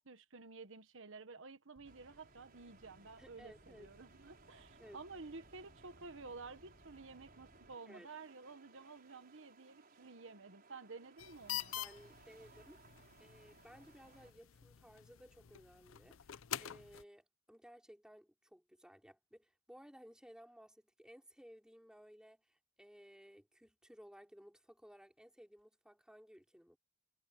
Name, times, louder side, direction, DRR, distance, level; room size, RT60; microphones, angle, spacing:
voice 1, 0.0-11.7, right 4 dB, 70° right, 1.4 m, -52 dB
sound 1, 1.8-7.8, equal, 50° left, 7.3 m, -66 dB
sound 2, 1.8-14.3, right 4 dB, 50° right, 4.9 m, -64 dB
voice 2, 3.2-3.9 4.8-5.0 7.9-8.1 11.8-12.8 13.2-26.8, equal, 5° right, 3.1 m, -59 dB
sound 3, 11.2-17.0, left 12 dB, 80° left, 0.6 m, -47 dB
head